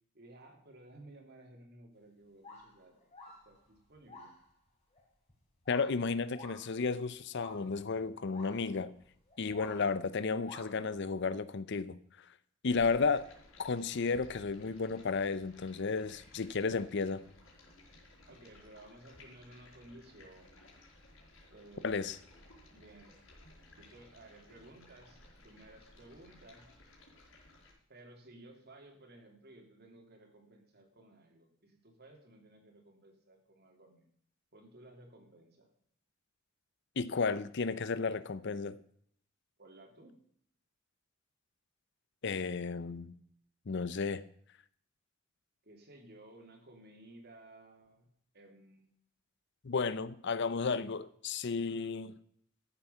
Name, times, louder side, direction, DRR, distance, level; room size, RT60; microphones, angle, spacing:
voice 1, 0.1-3.1 3.4-4.3 18.3-20.6 21.5-22.0 22.7-23.2 23.7-26.7 27.9-34.1 34.5-35.7 39.6-40.2 45.6-48.1 48.3-48.9, right 1 dB, 50° right, 2.9 m, -56 dB
sound 1, 2.4-4.5 4.9-5.0 5.3-5.4 5.6-7.9 8.3-10.1 10.4-11.0, left 3 dB, 30° left, 3.8 m, -52 dB
voice 2, 5.7-8.9 9.4-12.0 12.6-13.3 13.6-17.2 21.8-22.2 37.0-38.8 42.2-43.1 43.7-44.2 49.6-52.2, left 4 dB, 55° left, 0.6 m, -33 dB
Stream, 12.7-27.7, left 1 dB, 75° left, 4.5 m, -58 dB
13.5 x 8.0 x 5.6 m
head